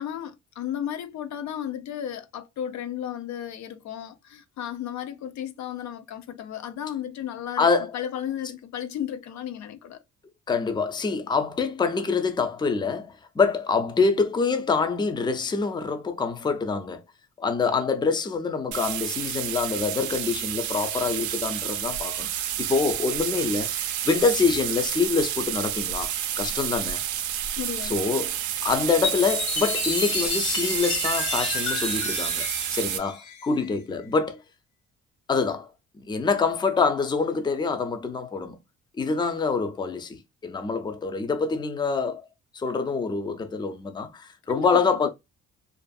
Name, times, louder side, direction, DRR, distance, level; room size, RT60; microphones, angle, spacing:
voice 1, 0.0-10.0 27.6-28.0 44.5-45.1, left 10 dB, 70° left, 0.5 m, -34 dB
voice 2, 7.6-8.0 10.5-17.0 17.4-27.0 27.8-34.4 35.3-35.7 36.0-38.6 39.0-42.3 42.5-45.1, left 4 dB, 15° left, 0.4 m, -26 dB
sound 1, 18.7-33.0, right 11 dB, 75° right, 0.5 m, -30 dB
Chime, 29.0-33.7, left 5 dB, 85° left, 1.0 m, -31 dB
2.5 x 2.4 x 2.2 m
cardioid pair, 90°, 30 cm